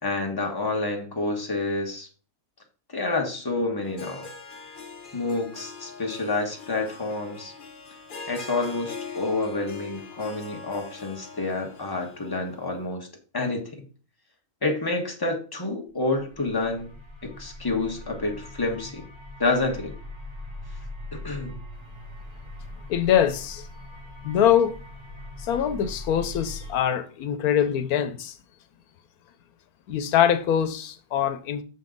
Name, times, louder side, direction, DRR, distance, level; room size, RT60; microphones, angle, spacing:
voice 1, 0.0-2.1 2.9-4.3 5.1-7.5 8.3-13.1 13.3-13.8 14.6-16.9 17.2-19.0 19.4-19.9 21.1-21.6, left 2 dB, 15° left, 1.4 m, -28 dB
Harp, 3.8-12.9, left 4 dB, 40° left, 1.0 m, -42 dB
sound 1, 16.2-26.7, left 1 dB, 20° right, 1.3 m, -41 dB
voice 2, 22.9-23.7 24.2-24.8 25.4-28.4 29.9-31.6, left 9 dB, 90° left, 1.2 m, -23 dB
7.0 x 5.5 x 3.8 m
omnidirectional pair, 1.5 m